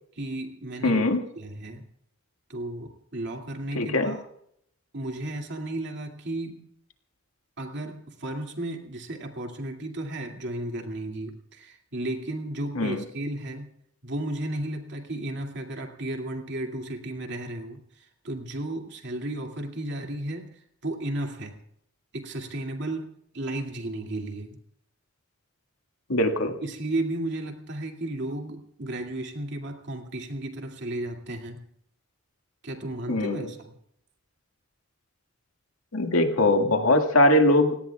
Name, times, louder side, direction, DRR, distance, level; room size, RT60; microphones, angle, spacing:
voice 1, 0.2-1.1 1.4-1.9 2.5-4.2 4.9-6.7 7.6-13.7 14.0-21.6 22.1-24.6 26.6-31.6 32.6-33.7, right 1 dB, 60° right, 3 dB, 2.4 m, -34 dB
voice 2, 0.8-1.2 3.8-4.2 12.8-13.0 26.1-26.6 33.1-33.4 35.9-37.8, left 1 dB, 90° left, 5 dB, 1.9 m, -21 dB
29.5 x 17.5 x 2.4 m, 0.72 s
head